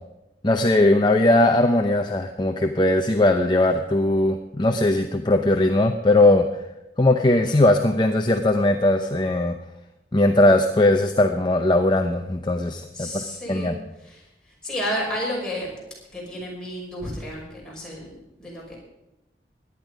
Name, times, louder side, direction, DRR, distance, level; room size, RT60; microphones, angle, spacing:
voice 1, 0.4-6.5 7.0-9.6 10.1-13.8, left 1 dB, 25° left, 5 dB, 0.7 m, -19 dB
voice 2, 12.9-15.7 16.1-18.8, equal, 5° left, -5 dB, 5.8 m, -32 dB
17.0 x 11.0 x 5.2 m, 0.95 s
head